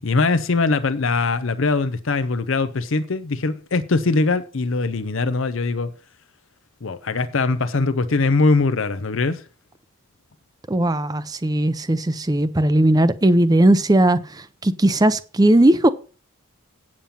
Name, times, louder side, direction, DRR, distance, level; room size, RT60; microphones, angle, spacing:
voice 1, 0.0-5.9 6.8-9.4, left 3 dB, 65° left, 0.7 m, -21 dB
voice 2, 10.7-15.9, right 1 dB, 15° right, 0.6 m, -18 dB
8.7 x 7.4 x 5.6 m
head